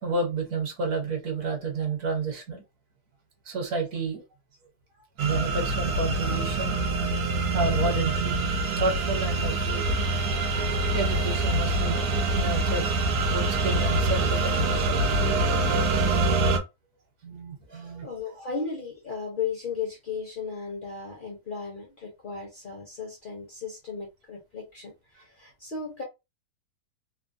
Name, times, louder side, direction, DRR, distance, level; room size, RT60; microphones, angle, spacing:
voice 1, 0.0-2.6 3.5-4.2 5.2-6.8 7.5-8.4 8.8-10.0 10.9-12.9 13.2-15.0 17.2-18.1 18.3-18.5, right 4 dB, 65° right, 1.3 m, -30 dB
sound 1, 5.2-16.6, right 2 dB, 85° right, 1.2 m, -25 dB
voice 2, 18.0-26.0, left 5 dB, 45° left, 0.8 m, -35 dB
3.1 x 2.1 x 2.5 m
omnidirectional pair, 1.6 m